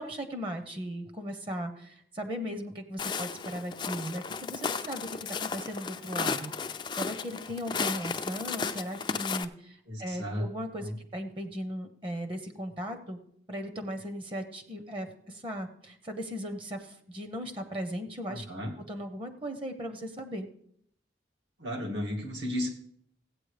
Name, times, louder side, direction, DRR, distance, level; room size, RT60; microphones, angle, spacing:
voice 1, 0.0-13.2 13.5-18.5 18.9-20.5, equal, 30° right, 7 dB, 0.8 m, -37 dB
Walk footsteps, 3.0-9.4, left 5 dB, 25° left, 0.4 m, -34 dB
voice 2, 9.9-10.5 10.8-11.0 18.3-18.7 21.6-22.7, left 1 dB, 85° right, -1 dB, 2.2 m, -34 dB
15.5 x 8.4 x 3.3 m, 0.68 s
head